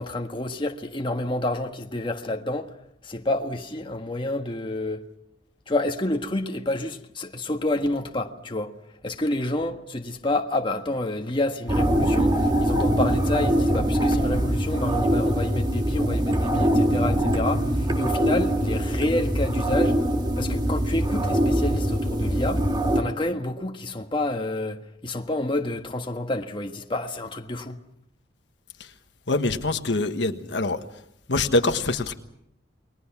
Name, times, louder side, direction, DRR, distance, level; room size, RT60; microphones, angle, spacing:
voice 1, 0.0-2.7 3.0-5.0 5.7-8.7 9.0-20.0 20.4-22.6 22.9-27.8, left 1 dB, 30° left, 1.5 m, -28 dB
sound 1, 11.7-23.0, right 1 dB, 25° right, 2.0 m, -23 dB
voice 2, 29.3-30.8 31.3-32.2, left 2 dB, 75° left, 1.4 m, -24 dB
29.0 x 21.5 x 6.0 m
head